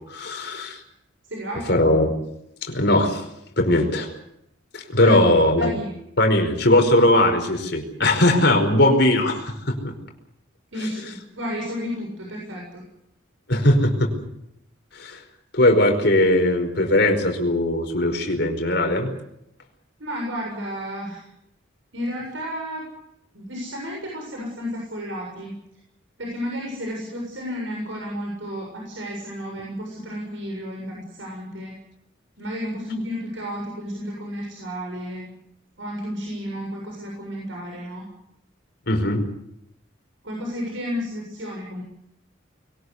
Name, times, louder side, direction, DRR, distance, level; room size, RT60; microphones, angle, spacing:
voice 1, 0.1-0.8 1.7-2.1 2.6-3.2 3.6-4.1 4.7-5.7 6.2-9.9 10.8-10.9 13.5-14.1 14.9-15.2 15.5-19.1 38.9-39.2, left 1 dB, 55° left, 4 dB, 5.1 m, -19 dB
voice 2, 1.3-1.7 5.0-6.0 10.7-12.8 20.0-21.3 21.9-22.9 23.3-25.6 26.2-31.7 32.4-35.3 35.8-38.0 40.2-41.8, equal, 70° right, -1 dB, 7.2 m, -32 dB
23.0 x 19.0 x 8.3 m, 0.79 s
head